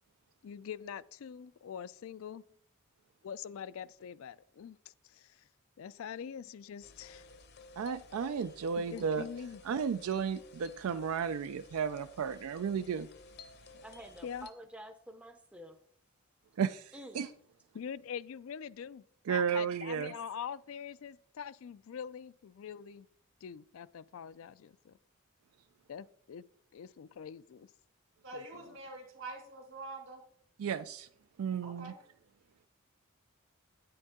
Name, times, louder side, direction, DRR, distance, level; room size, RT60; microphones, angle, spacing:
voice 1, 0.4-2.4 3.2-5.5 5.8-7.3 8.8-9.6 14.2-14.5 17.7-23.1 23.4-25.0 25.9-26.4 26.7-27.7 28.3-28.8, left 7 dB, 70° left, 0.3 m, -44 dB
sound 1, 6.8-14.5, left 3 dB, 50° left, 0.7 m, -55 dB
voice 2, 7.8-9.3 9.6-13.1 16.6-17.3 19.3-20.1 30.6-31.1 31.4-31.9, right 6 dB, 80° right, 0.4 m, -33 dB
voice 3, 8.8-9.3 13.8-15.8 16.9-17.2, equal, 5° right, 0.5 m, -49 dB
voice 4, 28.2-30.2 31.6-32.0, right 2 dB, 60° right, 2.4 m, -45 dB
9.2 x 7.8 x 3.6 m
head